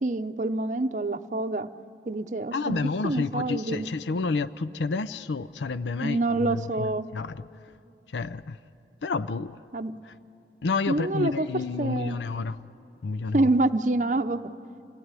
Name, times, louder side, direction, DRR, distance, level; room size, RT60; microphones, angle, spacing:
voice 1, 0.0-1.7 2.1-2.8 3.0-3.9 6.0-7.1 9.7-9.9 10.9-11.5 11.8-12.2 13.3-14.5, right 2 dB, 45° right, 0.6 m, -26 dB
voice 2, 2.5-6.9 7.1-7.4 8.1-8.6 9.0-9.6 10.1-10.2 10.6-12.6 13.0-13.5, left 4 dB, 90° left, 0.5 m, -30 dB
27.5 x 17.5 x 9.8 m
head